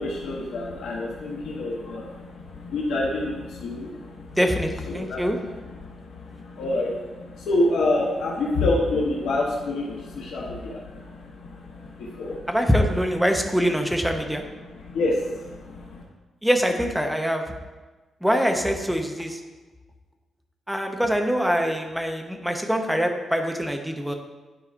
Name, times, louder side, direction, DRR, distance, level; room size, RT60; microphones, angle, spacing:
voice 1, 0.0-4.4 4.9-5.5 5.8-12.5 14.7-16.0, left 2 dB, 75° left, -2 dB, 0.9 m, -28 dB
voice 2, 4.3-5.4 12.5-14.4 16.4-17.4 18.2-19.4 20.7-24.1, equal, ahead, 4 dB, 0.5 m, -24 dB
9.7 x 4.6 x 2.5 m, 1.2 s
wide cardioid pair, 175°, 0 cm